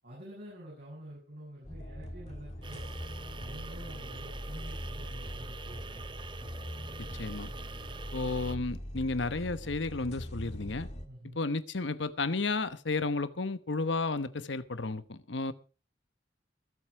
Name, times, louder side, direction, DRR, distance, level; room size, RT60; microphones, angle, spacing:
voice 1, 0.0-2.9 3.3-6.0 11.1-11.4, right 1 dB, 60° right, 7.9 m, -48 dB
sound 1, 1.6-11.0, equal, 40° left, 1.8 m, -41 dB
sound 2, 2.6-8.6, right 4 dB, 25° right, 0.7 m, -46 dB
voice 2, 7.2-7.5 8.1-10.9 11.4-15.5, left 3 dB, 80° left, 1.1 m, -32 dB
21.5 x 7.9 x 4.8 m
head